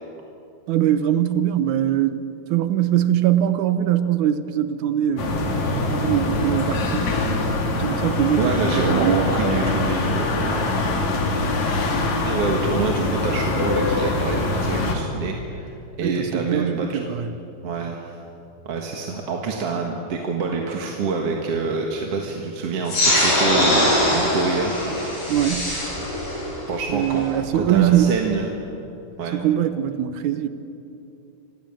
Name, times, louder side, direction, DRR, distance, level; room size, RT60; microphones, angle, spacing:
voice 1, 0.7-2.2 2.5-5.4 5.9-7.1 7.8-9.3 16.0-17.3 25.3-25.7 26.9-28.2 29.3-30.5, right 11 dB, 80° right, 11 dB, 2.4 m, -22 dB
sound 1, 5.2-14.9, left 2 dB, 65° left, 3.6 m, -23 dB
voice 2, 8.4-10.8 12.2-16.9 17.6-18.2 18.7-24.7 25.0-25.3 26.7-27.2 27.5-28.5 29.2-29.4, right 4 dB, 55° right, 1 dB, 2.5 m, -26 dB
sound 2, 22.9-27.9, left 1 dB, 85° left, 9.8 m, -22 dB
26.5 x 15.5 x 9.0 m, 2.7 s
omnidirectional pair, 3.6 m